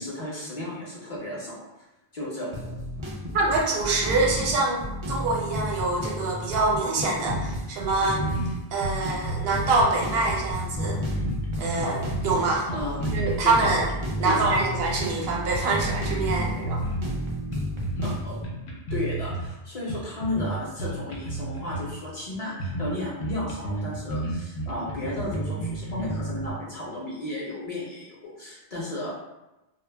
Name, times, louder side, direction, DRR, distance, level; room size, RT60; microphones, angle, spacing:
voice 1, 0.0-1.5 2.1-2.7 12.7-13.0 14.2-14.6 18.2-18.4 18.9-29.1, left 1 dB, 45° left, -6 dB, 0.6 m, -33 dB
sound 1, 2.5-18.4, equal, 45° right, 0.4 m, -33 dB
voice 2, 3.3-8.3 8.7-11.0 11.6-12.7 13.1-16.8, right 3 dB, 70° right, -1 dB, 0.8 m, -25 dB
sound 2, 7.3-7.6 7.9-8.0 8.2-9.8 10.3-12.4 12.7-14.6 15.0-15.1 15.5-17.2 17.5-18.2 18.4-19.5 19.9-22.0 22.3-22.4 22.6-22.9 23.2-26.5, right 2 dB, 90° left, 0.8 m, -32 dB
2.2 x 2.0 x 3.2 m, 0.98 s
omnidirectional pair, 1.1 m